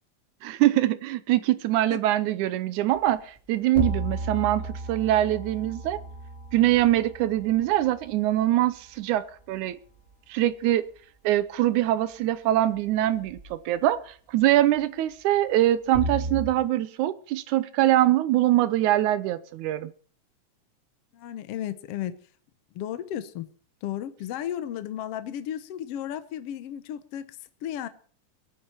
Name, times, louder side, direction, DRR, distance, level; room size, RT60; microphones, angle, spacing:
voice 1, 0.4-6.0 6.5-9.8 10.3-10.9 11.2-19.9, right 14 dB, 80° right, 2.1 m, -23 dB
sound 1, 3.0-3.1 3.7-8.2 13.3-13.5 15.9-16.5, right 1 dB, 25° right, 2.7 m, -33 dB
voice 2, 21.1-22.2 22.7-23.5 23.8-27.9, left 11 dB, 65° left, 1.6 m, -34 dB
22.0 x 9.4 x 4.4 m
omnidirectional pair, 3.6 m